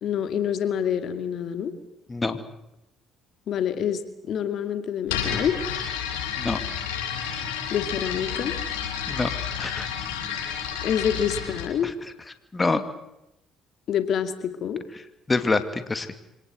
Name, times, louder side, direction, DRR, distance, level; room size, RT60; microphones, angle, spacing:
voice 1, 0.0-1.7 3.5-5.6 7.7-8.5 10.8-11.9 13.9-14.8, left 8 dB, 60° left, 10 dB, 2.5 m, -27 dB
voice 2, 2.1-2.4 6.4-6.6 9.1-9.3 9.6-9.9 12.5-12.8 15.3-16.1, left 3 dB, 25° left, 10 dB, 2.4 m, -25 dB
sound 1, 5.1-11.7, left 8 dB, 85° left, 7.2 m, -30 dB
26.0 x 18.5 x 9.2 m, 0.88 s
hypercardioid pair, 65°, 0 cm